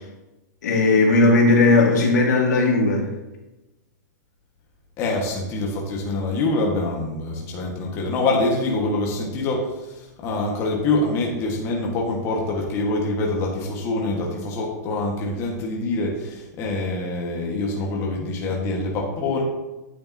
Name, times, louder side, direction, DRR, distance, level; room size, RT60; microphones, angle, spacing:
voice 1, 0.6-3.0, left 2 dB, 90° left, -1 dB, 2.2 m, -17 dB
voice 2, 5.0-19.4, left 2 dB, 30° left, -2 dB, 1.6 m, -25 dB
9.2 x 6.9 x 2.8 m, 1.0 s
hypercardioid pair, 155°, 9 cm